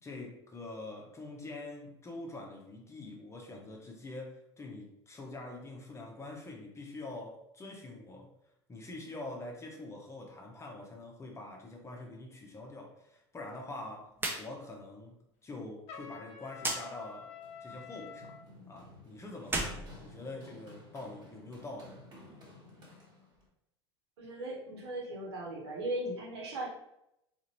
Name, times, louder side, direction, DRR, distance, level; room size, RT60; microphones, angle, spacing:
voice 1, 0.0-8.3 8.7-17.3 17.6-18.4 18.7-22.1, left 2 dB, 20° left, 0 dB, 0.8 m, -45 dB
sound 1, 14.1-14.4 14.8-14.9 16.6-16.8 19.4-20.7, right 2 dB, 15° right, 0.7 m, -35 dB
Trumpet, 15.9-18.4, left 6 dB, 50° left, 0.6 m, -47 dB
Run, 17.1-23.5, left 2 dB, 30° right, 1.5 m, -55 dB
voice 2, 24.2-26.7, right 1 dB, 70° right, -2 dB, 1.1 m, -38 dB
3.8 x 2.5 x 2.9 m, 0.81 s
hypercardioid pair, 80°, 14 cm